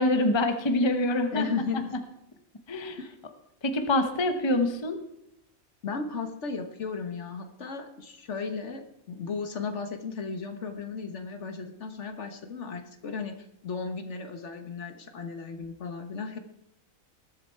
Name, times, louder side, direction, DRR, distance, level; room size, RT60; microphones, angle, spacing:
voice 1, 0.0-1.5 2.7-3.0 3.6-5.0, left 1 dB, 20° left, 7 dB, 0.9 m, -25 dB
voice 2, 1.3-2.0 3.0-3.2 5.8-13.3 13.6-16.4, left 5 dB, 55° left, 7 dB, 1.5 m, -35 dB
20.5 x 7.5 x 4.6 m, 0.81 s
omnidirectional pair, 1.5 m